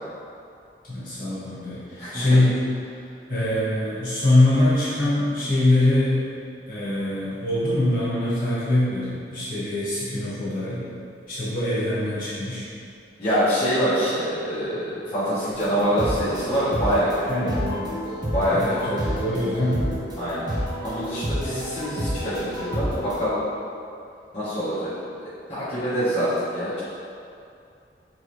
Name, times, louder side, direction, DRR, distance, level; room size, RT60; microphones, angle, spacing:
voice 1, 0.9-2.6 3.3-6.2 6.7-10.8 11.3-12.6 17.3-17.9 18.5-19.8, left 1 dB, 55° left, -11 dB, 1.4 m, -23 dB
voice 2, 2.0-2.4 13.2-17.2 18.3-19.0 20.2-20.5 20.8-23.4 24.3-24.9 25.5-26.8, equal, 35° left, -15 dB, 0.9 m, -25 dB
sound 1, 15.5-23.2, equal, 25° right, 0.6 m, -30 dB
3.6 x 3.0 x 3.0 m, 2.5 s
head